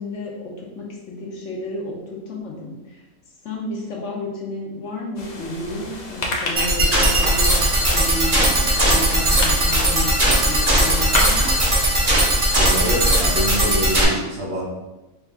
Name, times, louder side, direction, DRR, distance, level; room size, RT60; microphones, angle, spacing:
voice 1, 0.0-3.0 3.4-10.2 10.4-11.5, left 1 dB, 65° left, -2 dB, 1.1 m, -31 dB
sound 1, 5.2-12.8, left 2 dB, 45° left, 0.5 m, -31 dB
sound 2, 6.6-14.0, right 1 dB, 35° right, 0.9 m, -18 dB
voice 2, 12.5-14.6, equal, 55° right, -4 dB, 1.2 m, -25 dB
4.5 x 2.5 x 3.4 m, 1.1 s
omnidirectional pair, 1.4 m